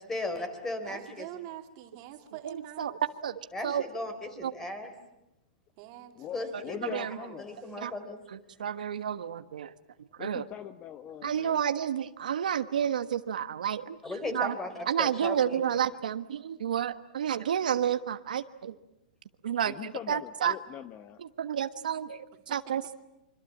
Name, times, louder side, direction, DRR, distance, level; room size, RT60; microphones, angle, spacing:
voice 1, 0.0-1.3 3.5-4.9 6.3-6.8 7.4-8.2 14.0-15.6, left 2 dB, 10° left, 9 dB, 3.9 m, -36 dB
voice 2, 0.8-3.0 5.8-7.4 22.5-22.7, right 13 dB, 45° right, 5 dB, 2.8 m, -45 dB
voice 3, 2.4-2.9 3.2-3.8 4.4-4.5 6.5-6.6 6.9-7.1 7.8-7.9 8.6-9.7 10.0-10.4 11.2-14.0 14.3-14.5 14.9-18.8 19.4-20.6 21.2-23.0, right 9 dB, 85° right, 11 dB, 1.3 m, -30 dB
voice 4, 6.2-7.6 10.2-11.6 19.7-21.2, left 10 dB, 25° left, 12 dB, 1.0 m, -41 dB
26.0 x 25.5 x 8.7 m, 0.90 s
hypercardioid pair, 150°, 4 cm